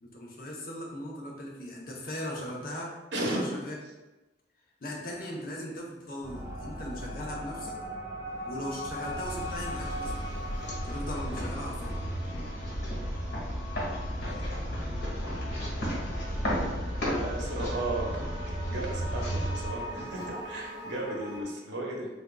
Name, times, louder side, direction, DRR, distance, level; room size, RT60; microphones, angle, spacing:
voice 1, 0.0-3.8 4.8-7.7 8.4-10.2 10.8-12.0, left 1 dB, 55° left, -2 dB, 0.8 m, -38 dB
voice 2, 3.1-3.4 14.3-14.6 17.2-18.2 18.7-22.1, right 2 dB, 85° right, -1 dB, 0.8 m, -35 dB
sound 1, 6.2-21.4, equal, 20° right, 0.8 m, -41 dB
sound 2, 8.5-20.5, equal, 80° left, 1.3 m, -34 dB
3.6 x 3.5 x 2.3 m, 1.1 s
head